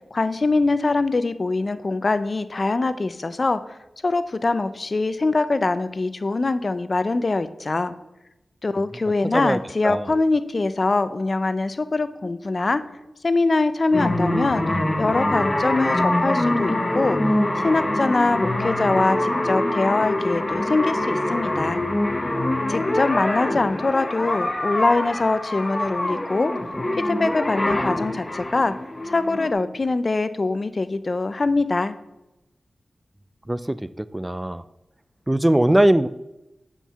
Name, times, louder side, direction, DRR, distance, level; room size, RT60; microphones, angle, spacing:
voice 1, 0.1-3.6 4.0-7.9 8.6-12.8 13.2-14.6 15.0-17.2 17.6-21.8 22.7-26.5 27.0-28.7 29.1-31.9, left 3 dB, 50° left, 13 dB, 0.5 m, -23 dB
voice 2, 9.3-10.1 33.5-34.6 35.3-36.1, right 1 dB, 20° right, 15 dB, 0.3 m, -21 dB
sound 1, 13.9-29.5, left 1 dB, 30° left, 1.0 m, -24 dB
7.9 x 4.6 x 5.6 m, 0.94 s
cardioid pair, 45°, 0 cm